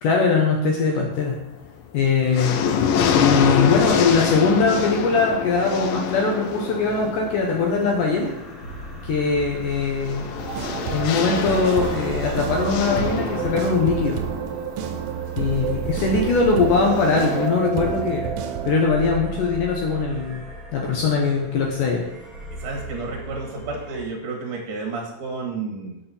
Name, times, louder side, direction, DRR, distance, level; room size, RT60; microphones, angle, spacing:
voice 1, 0.0-1.4 1.9-2.6 3.1-8.3 9.0-10.3 10.9-14.2 15.4-18.3 18.7-20.4 20.7-22.0, left 4 dB, 70° left, 0 dB, 2.0 m, -21 dB
sound 1, 1.1-1.7 2.0-17.5, left 7 dB, 85° left, 1.9 m, -27 dB
sound 2, 6.4-24.0, right 2 dB, ahead, 0.5 m, -37 dB
sound 3, 10.4-18.9, right 8 dB, 85° right, 2.8 m, -30 dB
voice 2, 22.5-26.0, right 3 dB, 65° right, 0 dB, 2.3 m, -31 dB
6.6 x 5.6 x 6.9 m, 0.91 s
omnidirectional pair, 4.8 m